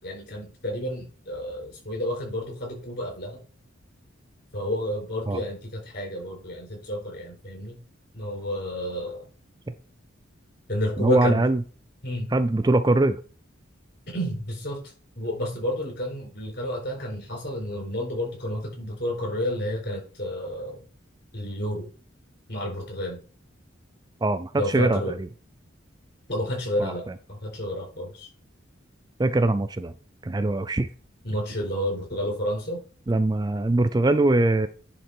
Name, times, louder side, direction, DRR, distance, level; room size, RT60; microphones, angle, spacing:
voice 1, 0.0-3.4 4.5-7.8 8.1-9.3 10.7-11.4 12.0-12.3 14.1-20.8 21.3-21.9 22.5-23.2 24.6-25.1 26.3-28.3 31.2-32.8, left 1 dB, 55° left, -1 dB, 4.7 m, -30 dB
voice 2, 11.0-11.6 12.3-13.2 24.2-25.3 26.8-27.1 29.2-29.9 30.2-30.9 33.1-34.7, right 2 dB, 20° right, 10 dB, 0.4 m, -22 dB
10.0 x 4.0 x 4.4 m, 0.38 s
head